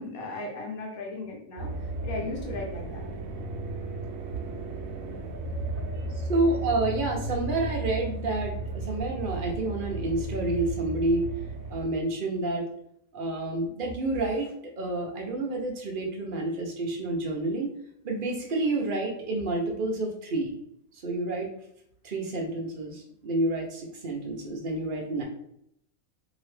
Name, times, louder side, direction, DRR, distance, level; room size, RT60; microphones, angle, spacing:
voice 1, 0.0-1.7 2.0-3.0, left 2 dB, 80° left, 0 dB, 1.3 m, -36 dB
sound 1, 1.6-11.9, right 2 dB, 80° right, 1.1 m, -34 dB
voice 2, 6.3-11.2 11.7-12.6 13.1-14.5 14.8-17.7 18.0-20.5 21.0-21.5 22.0-25.2, right 2 dB, 50° right, 1 dB, 0.7 m, -29 dB
2.9 x 2.8 x 3.3 m, 0.72 s
omnidirectional pair, 1.5 m